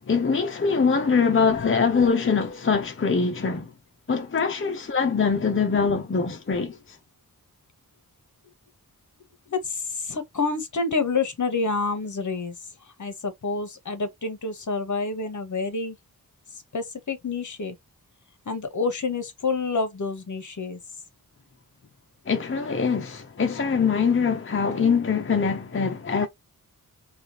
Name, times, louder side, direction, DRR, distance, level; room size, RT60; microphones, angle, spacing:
voice 1, 0.1-3.7 4.1-7.0 22.3-26.3, left 5 dB, 35° left, 0.7 m, -23 dB
voice 2, 9.5-16.0 16.5-17.7 18.5-20.8, left 4 dB, 55° left, 1.2 m, -28 dB
4.8 x 2.5 x 3.0 m
wide cardioid pair, 65°, 36 cm